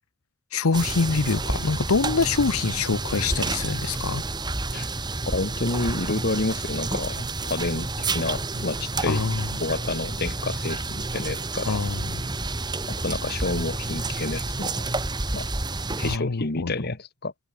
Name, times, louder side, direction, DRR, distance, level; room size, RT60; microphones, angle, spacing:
voice 1, 0.5-4.2 9.1-9.5 11.6-12.2 16.0-16.7, left 4 dB, 85° left, 0.9 m, -25 dB
sound 1, 0.7-16.2, right 2 dB, 20° right, 1.5 m, -30 dB
voice 2, 5.3-9.2 9.6-11.8 12.9-14.9 15.3-15.5 16.0-17.3, left 2 dB, 50° left, 1.6 m, -29 dB
head